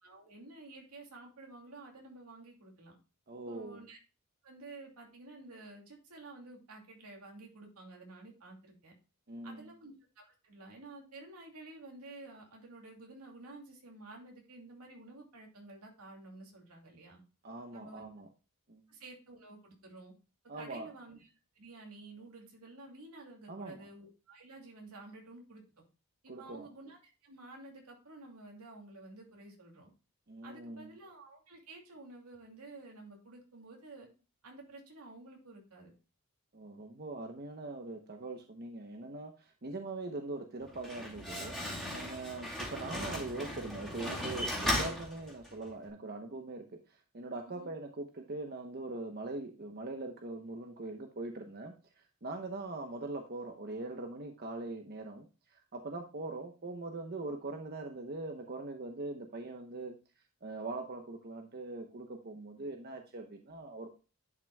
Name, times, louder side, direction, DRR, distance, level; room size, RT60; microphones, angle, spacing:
voice 1, 0.0-2.9 3.5-4.0 4.4-8.9 9.4-17.2 17.7-18.1 18.9-20.1 20.6-21.3 21.6-25.6 26.2-29.9 30.4-34.1 34.4-35.9 47.5-47.7, right 2 dB, 90° right, 0 dB, 2.6 m, -51 dB
voice 2, 3.3-3.8 9.3-9.7 17.4-18.3 18.7-18.8 20.5-20.9 23.5-23.9 26.3-26.7 30.3-30.9 36.5-41.6 41.9-51.7 52.2-59.9 60.4-63.9, right 2 dB, 45° right, 4 dB, 0.9 m, -42 dB
Slam, 40.6-45.7, left 1 dB, ahead, 2.5 m, -37 dB
10.5 x 5.7 x 2.3 m, 0.32 s
head